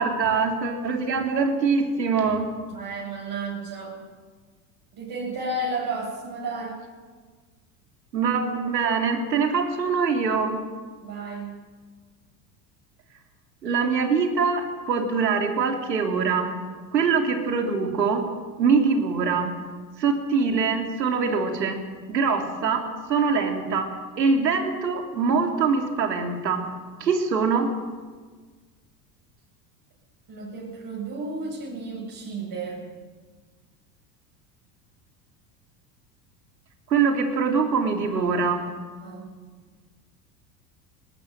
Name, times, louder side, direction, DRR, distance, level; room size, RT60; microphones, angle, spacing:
voice 1, 0.0-2.5 8.1-10.6 13.6-16.6 16.9-18.3 18.6-19.6 20.0-21.8 22.1-22.8 23.1-23.9 24.2-26.6 27.0-27.7 36.9-38.6, right 5 dB, 85° right, 4 dB, 3.2 m, -23 dB
voice 2, 2.7-4.0 5.0-6.8 11.0-11.6 30.3-32.9 39.0-39.3, right 3 dB, 45° right, -2 dB, 7.9 m, -32 dB
20.5 x 20.0 x 7.8 m, 1.5 s
hypercardioid pair, 85°, 49 cm